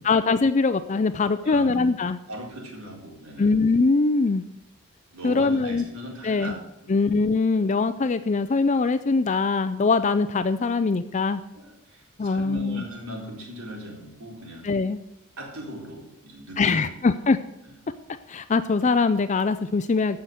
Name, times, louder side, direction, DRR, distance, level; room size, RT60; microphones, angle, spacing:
voice 1, 0.0-2.2 3.4-4.4 5.2-5.8 6.2-6.5 6.9-11.4 12.2-12.8 14.6-15.0 16.6-17.4 18.3-20.2, left 4 dB, 35° left, 11 dB, 0.4 m, -22 dB
voice 2, 1.4-1.9 2.3-3.6 5.1-7.1 11.5-14.6 15.4-17.1 17.6-17.8, right 1 dB, 75° right, -1 dB, 4.1 m, -39 dB
14.5 x 5.8 x 7.7 m, 0.90 s
head